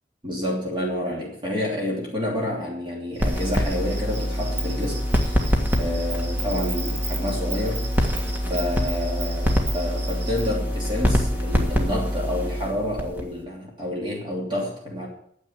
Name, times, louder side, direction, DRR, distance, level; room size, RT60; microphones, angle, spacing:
voice 1, 0.2-5.5 5.7-7.9 8.5-15.1, left 1 dB, 25° right, -3 dB, 3.0 m, -29 dB
Insect, 3.1-10.5, right 3 dB, 75° right, 2.5 m, -37 dB
sound 1, 3.2-13.4, equal, 10° right, 1.7 m, -25 dB
9.5 x 8.2 x 9.3 m, 0.68 s
head